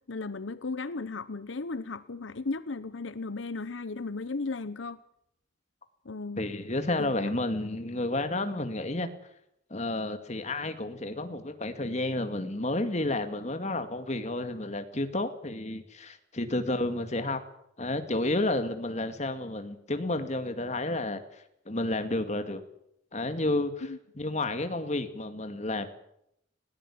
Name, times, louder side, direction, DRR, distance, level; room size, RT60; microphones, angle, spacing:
voice 1, 0.1-5.0 6.0-6.4 7.0-7.1 23.8-24.0, left 3 dB, 85° left, 15 dB, 0.9 m, -35 dB
voice 2, 6.4-9.1 9.7-17.4 17.8-21.2 21.7-22.6 23.1-23.9 24.2-25.9, left 2 dB, 40° left, 8 dB, 2.2 m, -31 dB
20.0 x 17.5 x 8.6 m, 0.76 s
head